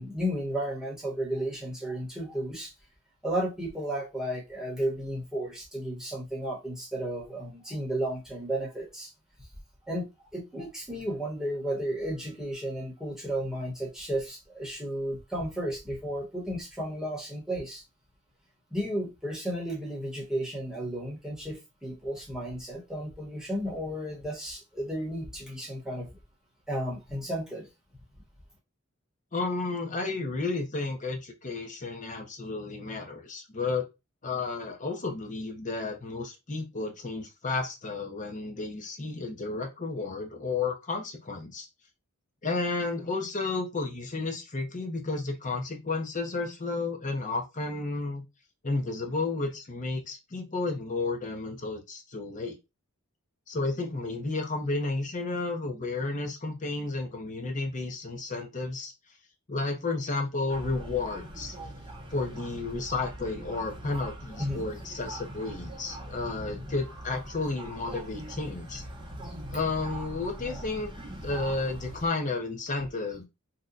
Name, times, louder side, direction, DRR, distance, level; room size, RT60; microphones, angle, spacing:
voice 1, 0.0-2.7 3.2-9.1 9.9-10.1 10.3-17.8 18.7-26.1 26.7-27.7 64.4-64.6 66.4-66.7 69.2-69.3, right 1 dB, 5° right, 1.0 m, -33 dB
voice 2, 29.3-33.9 34.2-41.7 42.4-48.2 48.6-52.6 53.5-58.9 59.5-61.5 62.1-68.8 69.5-70.9 71.2-73.2, left 3 dB, 35° left, 0.8 m, -32 dB
sound 1, 60.5-72.1, right 1 dB, 25° right, 0.8 m, -42 dB
2.8 x 2.2 x 3.8 m
head